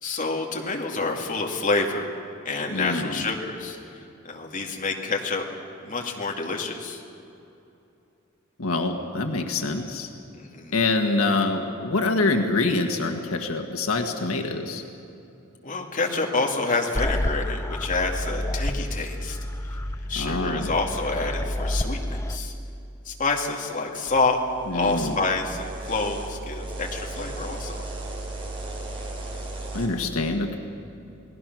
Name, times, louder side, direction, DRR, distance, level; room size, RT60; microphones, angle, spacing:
voice 1, 0.0-2.1 2.4-5.4 5.8-7.0 10.3-10.7 15.6-19.4 19.6-19.8 20.1-22.5 23.0-24.4 24.7-27.9, left 3 dB, 40° left, 0 dB, 2.4 m, -28 dB
voice 2, 2.7-3.2 8.6-10.1 10.7-14.8 20.1-20.7 24.7-25.2 29.7-30.6, left 3 dB, 85° left, 4 dB, 1.6 m, -25 dB
sound 1, 17.0-22.4, left 1 dB, 15° left, 0.6 m, -29 dB
sound 2, 24.1-29.9, right 2 dB, 25° right, 3.6 m, -36 dB
29.0 x 19.5 x 6.2 m, 2.8 s
head